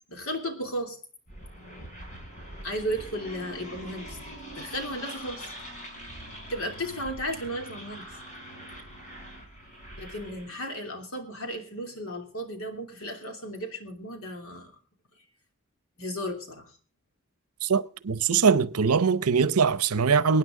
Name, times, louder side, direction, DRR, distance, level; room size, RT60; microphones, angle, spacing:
voice 1, 0.1-1.0 2.6-4.2 4.6-5.5 6.5-8.0 10.0-14.7 16.0-16.7, equal, 75° left, 3.0 m, -34 dB
sound 1, 1.3-10.7, right 1 dB, 35° left, 4.5 m, -43 dB
voice 2, 17.7-20.4, right 5 dB, 85° right, 0.7 m, -22 dB
24.0 x 9.6 x 3.8 m
head